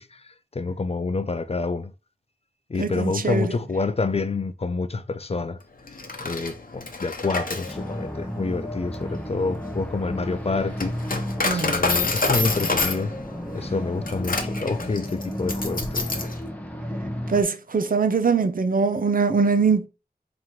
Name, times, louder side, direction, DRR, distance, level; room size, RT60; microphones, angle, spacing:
voice 1, 0.0-1.9 2.7-5.6 6.2-11.0 11.5-13.2 13.5-16.3, left 3 dB, 40° left, 0.3 m, -28 dB
voice 2, 2.8-3.6 11.4-11.8 17.3-19.9, right 5 dB, 60° right, 0.5 m, -22 dB
Coin (dropping), 5.9-16.4, left 3 dB, 60° left, 0.8 m, -28 dB
sound 1, 7.7-17.4, equal, 10° left, 0.8 m, -33 dB
3.0 x 2.9 x 3.8 m
wide cardioid pair, 45°, 17 cm